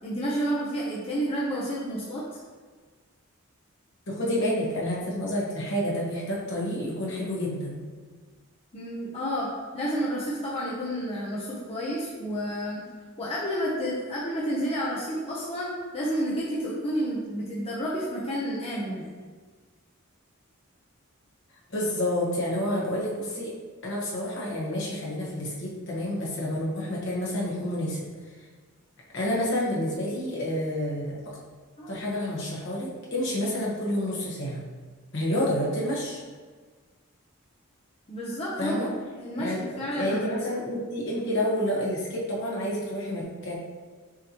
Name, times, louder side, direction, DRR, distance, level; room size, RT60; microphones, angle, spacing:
voice 1, 0.0-2.2 8.7-12.9 13.2-19.1 31.8-31.9 38.1-38.7 39.1-40.4, equal, 30° left, -6 dB, 0.6 m, -30 dB
voice 2, 4.1-7.8 21.7-23.5 23.8-28.1 29.1-31.4 31.9-34.7 35.1-36.2 38.6-38.9 39.3-43.5, left 1 dB, 60° left, -5 dB, 1.2 m, -29 dB
6.3 x 3.0 x 2.9 m, 1.5 s
head